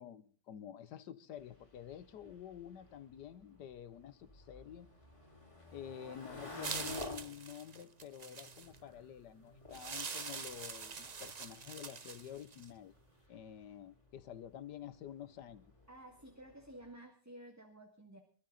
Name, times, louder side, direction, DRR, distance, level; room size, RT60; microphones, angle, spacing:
voice 1, 0.0-4.9 5.7-12.9 13.3-15.7, left 9 dB, 75° left, 14 dB, 1.4 m, -49 dB
sound 1, 1.4-16.9, left 2 dB, 15° left, 4.3 m, -53 dB
sound 2, 6.6-8.8 9.7-12.7, right 5 dB, 40° right, 0.6 m, -44 dB
voice 2, 15.9-18.2, right 1 dB, 10° right, 3 dB, 1.9 m, -53 dB
24.5 x 12.5 x 3.9 m, 0.42 s
omnidirectional pair, 1.9 m